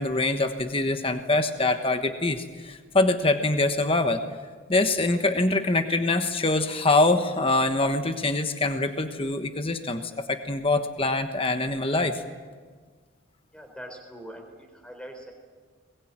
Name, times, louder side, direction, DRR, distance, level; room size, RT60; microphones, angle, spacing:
voice 1, 0.0-4.2 4.7-12.2, left 2 dB, 25° left, 7 dB, 1.2 m, -24 dB
voice 2, 13.5-15.3, equal, 5° left, 5 dB, 4.0 m, -42 dB
22.5 x 21.5 x 8.9 m, 1.5 s
head